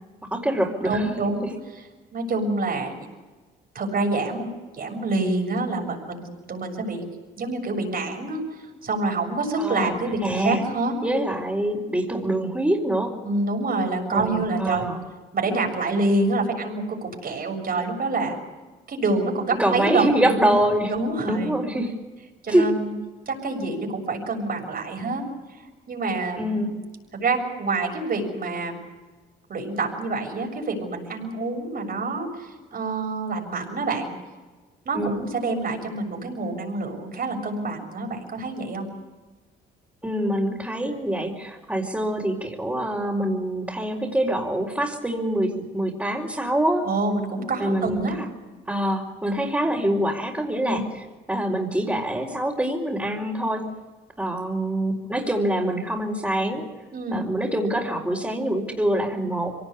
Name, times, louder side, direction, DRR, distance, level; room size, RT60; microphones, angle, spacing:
voice 1, 0.3-1.1 9.6-9.9 10.2-10.6 11.0-13.1 14.1-15.0 19.6-20.9 21.2-21.9 22.5-22.7 26.4-26.8 34.9-35.2 40.0-46.9 47.6-48.3 48.7-53.7 54.2-56.7 57.1-59.6, right 1 dB, 10° right, -4 dB, 4.4 m, -25 dB
voice 2, 0.8-1.5 2.1-3.1 3.7-4.5 4.7-7.0 7.4-11.0 13.2-14.9 15.3-18.4 18.9-20.5 20.9-21.6 22.4-22.9 23.3-25.3 25.9-26.6 27.1-28.8 29.5-34.1 34.9-38.9 46.9-48.2 50.6-50.9 56.9-57.2, right 3 dB, 50° right, 2 dB, 7.0 m, -27 dB
24.5 x 18.5 x 8.4 m, 1.3 s
cardioid pair, 90°, 20 cm